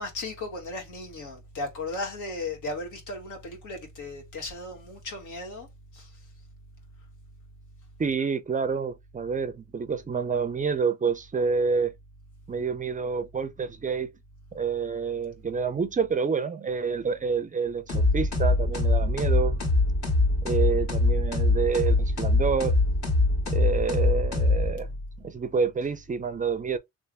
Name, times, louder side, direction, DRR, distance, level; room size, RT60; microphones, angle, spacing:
voice 1, 0.0-5.7 5.9-6.2, left 2 dB, 80° left, 1.6 m, -36 dB
voice 2, 8.0-11.9 12.5-14.1 14.5-19.6 20.4-22.8 23.5-24.9 25.2-26.8, right 5 dB, 25° right, 0.4 m, -28 dB
sound 1, 17.9-25.0, left 2 dB, 60° left, 2.3 m, -23 dB
3.4 x 2.4 x 3.3 m
cardioid pair, 90°, 30 cm